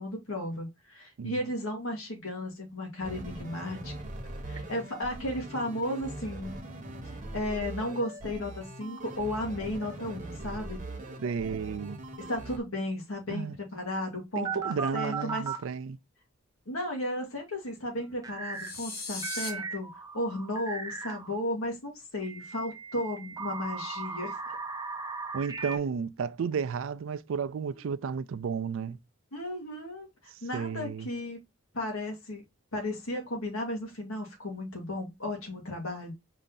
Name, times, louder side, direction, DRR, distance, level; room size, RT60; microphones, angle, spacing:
voice 1, 0.0-3.9 4.5-6.6 7.3-10.8 12.2-15.4 16.7-19.9 20.1-24.4 27.6-27.8 29.3-30.1 30.4-31.4 31.7-32.4 32.7-36.1, left 1 dB, 85° left, 1.7 m, -34 dB
sound 1, 3.0-12.6, right 1 dB, 40° right, 0.8 m, -41 dB
voice 2, 11.2-12.0 13.3-13.6 14.4-16.0 25.3-29.0 30.5-31.1, right 6 dB, 70° right, 0.4 m, -32 dB
sound 2, 14.4-15.6 18.2-18.7 19.2-21.3 22.2-25.8, right 5 dB, 15° right, 0.5 m, -37 dB
sound 3, 18.5-19.5, left 3 dB, 45° left, 1.2 m, -37 dB
5.0 x 2.7 x 3.7 m
head